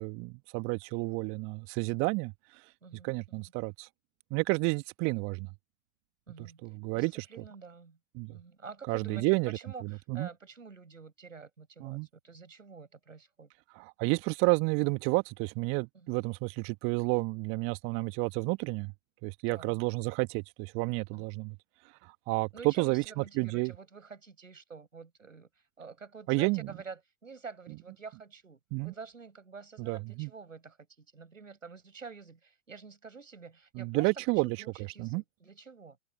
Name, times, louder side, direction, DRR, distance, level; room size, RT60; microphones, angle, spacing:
voice 1, 0.0-2.3 3.0-3.9 4.3-5.5 6.4-7.2 8.1-8.3 8.9-10.3 11.8-12.1 13.8-18.9 19.2-21.5 22.3-23.7 26.3-26.7 28.7-28.9 29.8-30.3 33.7-35.2, right 28 dB, 35° right, 1.4 m, -31 dB
voice 2, 2.8-3.5 6.3-6.6 6.9-8.0 8.3-12.0 12.2-13.5 15.9-16.2 19.5-19.8 21.1-21.3 22.5-25.5 25.8-34.1 34.4-36.0, right 5 dB, 85° right, 6.9 m, -48 dB
figure-of-eight pair, 105°, 38 cm